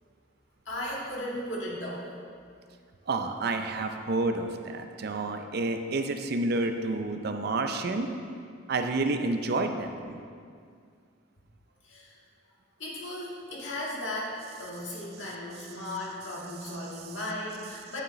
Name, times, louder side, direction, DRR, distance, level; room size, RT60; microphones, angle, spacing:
voice 1, 0.7-2.0 11.8-12.1 12.8-18.0, left 1 dB, 75° left, -4 dB, 1.8 m, -36 dB
voice 2, 3.1-8.1 8.7-10.2, right 2 dB, 55° right, 6 dB, 0.5 m, -29 dB
9.0 x 7.3 x 3.1 m, 2.2 s
head